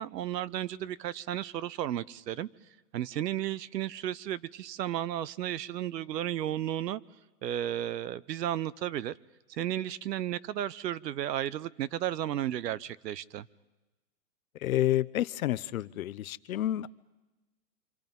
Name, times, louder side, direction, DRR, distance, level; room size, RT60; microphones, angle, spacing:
voice 1, 0.0-2.5 2.9-7.0 7.4-9.1 9.5-13.5, right 11 dB, 85° right, 0.9 m, -33 dB
voice 2, 14.6-16.9, left 13 dB, 60° left, 0.7 m, -29 dB
27.0 x 26.5 x 5.4 m
supercardioid pair, 175°, 48 cm